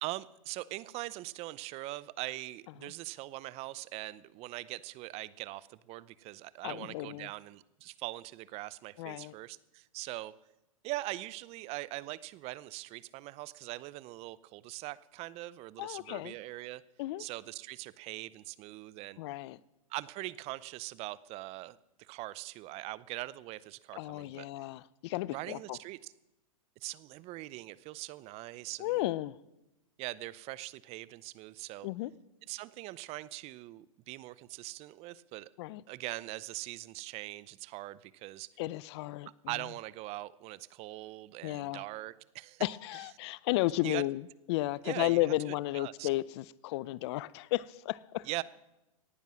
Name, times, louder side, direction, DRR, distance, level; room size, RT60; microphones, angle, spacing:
voice 1, 0.0-10.3 10.8-16.8 17.2-19.2 19.9-24.7 25.3-26.1 26.8-29.0 30.0-31.9 32.5-35.5 35.9-38.5 39.5-42.6 43.8-44.0 44.8-46.1 48.3-48.4, right 18 dB, 35° right, 0.6 m, -42 dB
voice 2, 6.6-7.3 9.0-9.3 15.8-16.3 17.0-17.2 19.2-19.6 23.9-25.8 28.8-29.4 31.8-32.1 35.6-35.8 38.6-39.3 41.4-41.8 42.6-44.2 44.5-48.3, left 17 dB, 50° left, 0.5 m, -33 dB
18.0 x 10.5 x 6.2 m
hypercardioid pair, 120°, 18 cm